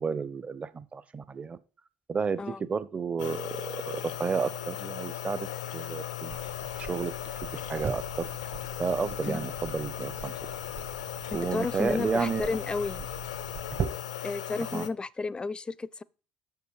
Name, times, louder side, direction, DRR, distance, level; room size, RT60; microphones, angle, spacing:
voice 1, 0.0-1.6 2.1-5.5 5.7-6.4 6.8-7.1 7.5-8.3 8.8-10.3 11.3-12.5 14.7-14.9, right 5 dB, 30° right, 0.8 m, -31 dB
sound 1, 3.2-14.9, left 12 dB, 85° left, 0.6 m, -37 dB
sound 2, 6.3-13.9, right 6 dB, 50° right, 1.6 m, -41 dB
voice 2, 11.3-13.1 14.2-16.0, left 4 dB, 20° left, 0.5 m, -32 dB
6.9 x 6.7 x 4.8 m
hypercardioid pair, 60°, 4 cm